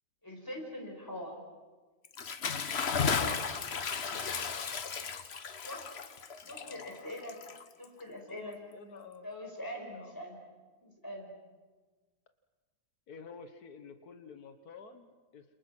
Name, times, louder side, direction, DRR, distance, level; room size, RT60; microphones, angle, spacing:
voice 1, 0.2-1.4 2.8-3.6 5.6-5.9 6.5-7.3 7.8-8.6 9.2-10.4 10.8-11.3, equal, 15° left, 1 dB, 5.5 m, -43 dB
Bathtub (filling or washing) / Splash splatter, 2.0-8.0, left 6 dB, 45° left, 1.3 m, -34 dB
voice 2, 6.4-7.1 8.3-9.3 9.8-10.2 13.1-15.5, left 5 dB, 85° left, 8 dB, 1.8 m, -50 dB
29.5 x 27.5 x 6.1 m, 1.3 s
omnidirectional pair, 1.6 m